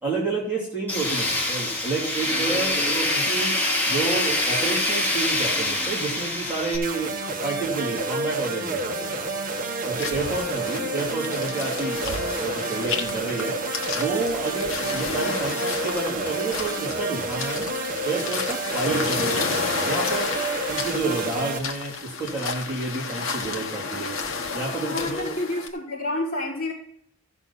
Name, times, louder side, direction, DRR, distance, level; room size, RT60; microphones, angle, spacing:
voice 1, 0.0-3.6 3.9-7.1 7.4-9.1 9.8-13.6 13.9-17.7 18.0-20.3 20.7-24.2 24.5-25.3, right 3 dB, 5° right, -7 dB, 2.8 m, -29 dB
Tools, 0.9-6.8, left 1 dB, 10° left, 2.4 m, -25 dB
sound 1, 6.8-21.6, right 2 dB, 40° right, 1.1 m, -29 dB
sound 2, 10.0-25.7, left 4 dB, 60° left, 1.2 m, -32 dB
voice 2, 24.8-26.7, left 2 dB, 40° left, -7 dB, 4.8 m, -29 dB
15.5 x 6.3 x 4.2 m, 0.68 s
head